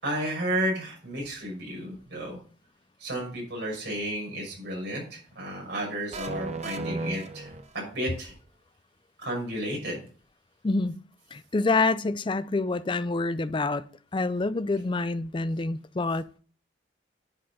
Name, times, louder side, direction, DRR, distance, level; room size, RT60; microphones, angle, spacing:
voice 1, 0.0-2.4 3.0-8.3 9.2-10.0, right 1 dB, 65° right, 5.8 m, -32 dB
sound 1, 6.1-8.1, right 3 dB, 35° right, 0.7 m, -35 dB
voice 2, 10.6-10.9 11.3-13.8 14.1-16.4, left 3 dB, 25° left, 0.4 m, -27 dB
10.5 x 5.5 x 5.4 m
head